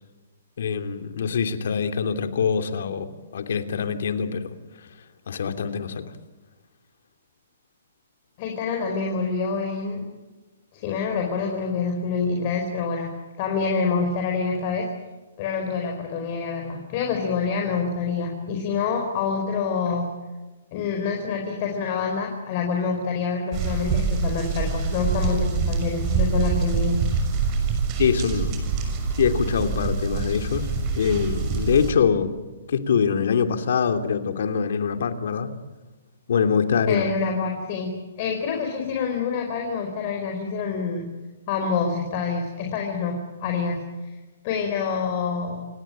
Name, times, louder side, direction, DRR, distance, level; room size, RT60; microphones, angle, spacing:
voice 1, 0.6-3.1 3.3-4.5 5.3-6.0 28.0-28.5 29.2-32.3 32.7-35.5 36.3-37.1, left 6 dB, 70° left, 7 dB, 2.9 m, -24 dB
voice 2, 8.4-10.0 10.7-14.9 15.4-20.1 20.7-27.0 36.9-41.1 41.5-43.8 44.4-45.7, left 5 dB, 40° left, 2 dB, 4.9 m, -27 dB
sound 1, 23.5-31.9, right 5 dB, 30° right, 6.4 m, -25 dB
29.0 x 17.5 x 8.9 m, 1.2 s
hypercardioid pair, 150°, 0 cm